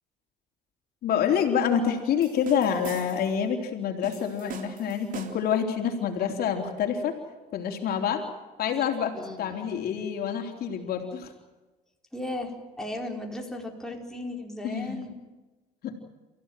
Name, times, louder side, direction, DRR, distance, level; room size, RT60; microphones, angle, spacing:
voice 1, 1.0-7.1 7.5-8.3 8.6-11.3 14.6-15.0 15.8-15.9, left 8 dB, 65° left, 3 dB, 3.8 m, -27 dB
sound 1, 2.2-3.4 4.0-5.6, right 5 dB, 50° right, 3.5 m, -41 dB
voice 2, 9.1-9.6 12.1-15.1, left 1 dB, 5° left, 0 dB, 4.7 m, -36 dB
30.0 x 16.0 x 9.3 m, 1.1 s
cardioid pair, 110°, 17 cm